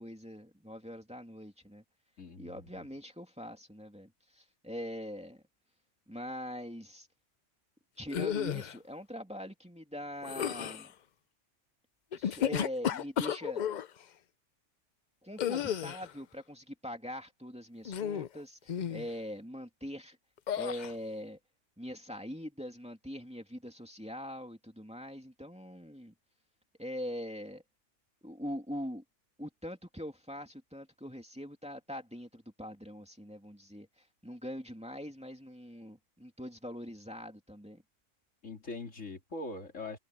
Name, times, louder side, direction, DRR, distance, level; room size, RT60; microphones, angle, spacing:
voice 1, 0.0-1.8 2.4-5.4 6.1-7.1 8.0-10.9 12.2-13.6 15.2-20.2 20.5-21.4 21.8-26.1 26.8-27.6 28.2-29.0 29.4-33.9 34.2-37.8, equal, 5° right, 2.8 m, -42 dB
voice 2, 2.2-2.5 38.4-40.0, left 2 dB, 85° left, 3.2 m, -41 dB
sound 1, 8.1-8.8 10.2-10.9 12.1-13.9 15.4-16.1 17.9-18.4 18.7-19.1 20.5-20.9, left 9 dB, 55° left, 0.5 m, -33 dB
omnidirectional pair, 1.3 m